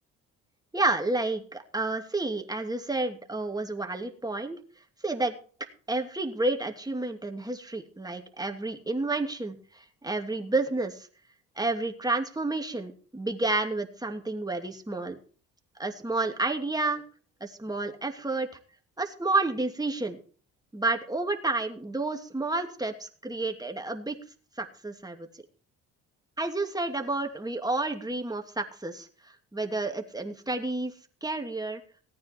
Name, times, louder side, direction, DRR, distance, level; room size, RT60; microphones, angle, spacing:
voice 1, 0.7-4.6 5.0-5.3 5.9-11.1 11.6-15.2 15.8-17.0 17.4-18.5 19.0-20.2 20.7-24.2 24.6-25.3 26.4-30.9 31.2-31.8, right 2 dB, 10° right, 4 dB, 2.6 m, -30 dB
17.5 x 9.5 x 4.6 m, 0.42 s
supercardioid pair, 70°, 32 cm